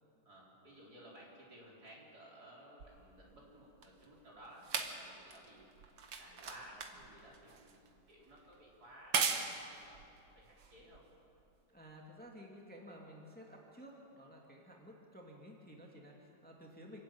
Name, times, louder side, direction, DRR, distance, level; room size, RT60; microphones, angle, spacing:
voice 1, 0.2-5.7 6.1-10.0 10.3-11.1, right 1 dB, 55° right, -4 dB, 4.9 m, -57 dB
sound 1, 2.8-11.4 12.3-12.4, right 5 dB, 90° right, 2.1 m, -41 dB
voice 2, 11.7-17.0, equal, 5° left, -1 dB, 2.3 m, -54 dB
27.0 x 12.5 x 8.9 m, 2.6 s
omnidirectional pair, 1.9 m